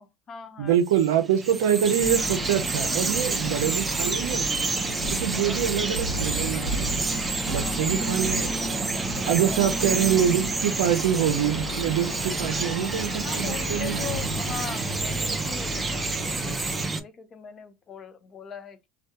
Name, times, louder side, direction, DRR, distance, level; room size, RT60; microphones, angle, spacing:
voice 1, 0.0-0.8 1.1-1.2 5.3-6.3 7.4-7.9 8.3-8.4 8.9-9.6 13.2-18.9, left 7 dB, 35° left, 0.5 m, -41 dB
voice 2, 0.6-4.5 5.2-7.1 7.5-8.5 9.3-14.1, right 9 dB, 85° right, 0.5 m, -25 dB
Bird vocalization bird call bird song, 0.9-17.0, right 3 dB, 20° right, 0.4 m, -29 dB
sound 1, 2.0-16.9, left 1 dB, 80° left, 0.9 m, -35 dB
2.2 x 2.1 x 2.8 m
supercardioid pair, 95°, 0 cm